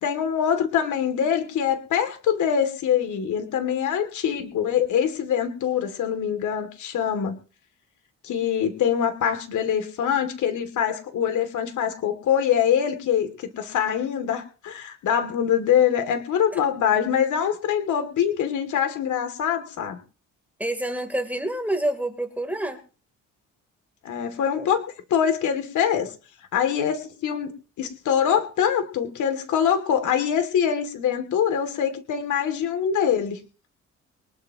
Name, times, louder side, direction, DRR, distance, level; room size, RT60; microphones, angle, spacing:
voice 1, 0.0-7.4 8.2-20.0 24.0-24.8 25.1-26.1 26.5-27.5 27.8-33.4, left 8 dB, 75° left, 7 dB, 2.7 m, -24 dB
voice 2, 20.6-22.8 24.6-24.7, right 1 dB, 5° right, 5 dB, 3.4 m, -27 dB
24.0 x 12.5 x 3.0 m, 0.36 s
cardioid pair, 90°, 30 cm